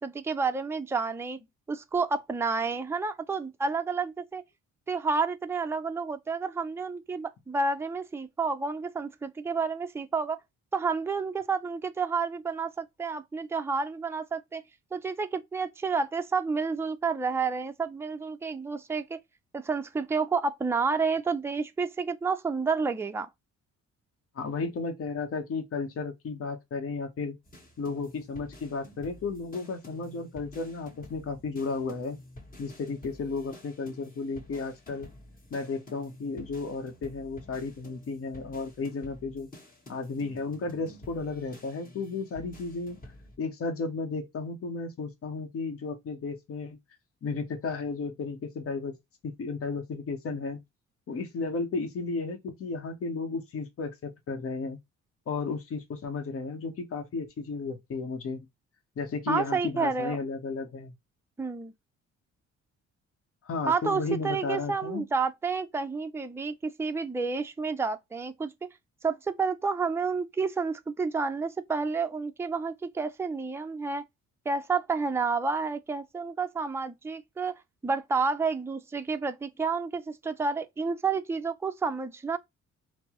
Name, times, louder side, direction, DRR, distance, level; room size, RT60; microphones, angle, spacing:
voice 1, 0.0-1.4 1.7-4.4 4.9-10.4 10.7-14.6 14.9-19.2 19.5-23.3 59.3-60.2 61.4-61.7 63.7-68.5 69.0-74.0 74.5-77.6 77.8-82.4, right 4 dB, 10° right, 0.4 m, -30 dB
voice 2, 24.3-27.4 27.8-32.2 32.6-35.1 35.5-39.5 39.9-43.0 43.4-46.8 47.2-48.9 49.2-50.6 51.1-54.8 55.3-58.5 59.0-60.9 63.4-65.0, left 4 dB, 50° left, 0.9 m, -33 dB
sound 1, 27.4-43.4, left 1 dB, 30° left, 1.3 m, -50 dB
4.2 x 2.0 x 2.9 m
cardioid pair, 90°, 30 cm